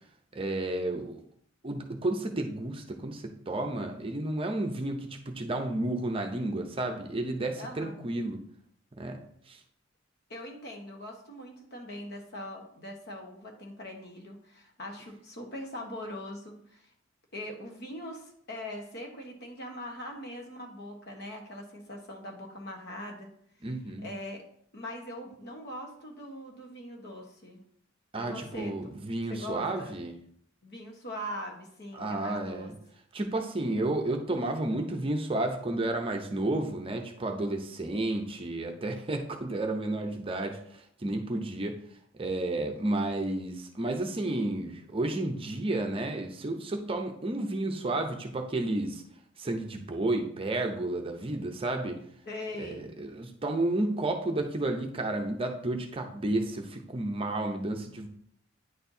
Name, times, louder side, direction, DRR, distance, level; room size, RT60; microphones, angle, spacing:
voice 1, 0.3-1.2 1.6-8.4 9.0-9.2 9.5-9.6 23.6-24.1 28.1-30.2 31.9-32.7 33.1-41.8 42.2-49.0 49.4-52.0 52.6-58.1, right 2 dB, 25° right, 4 dB, 0.6 m, -31 dB
voice 2, 7.6-8.0 10.3-16.9 17.3-23.3 24.0-24.4 24.7-27.6 28.2-29.0 29.3-30.0 30.6-32.7 52.3-52.9, left 1 dB, 55° left, 1 dB, 1.2 m, -41 dB
9.3 x 4.4 x 2.7 m, 0.66 s
head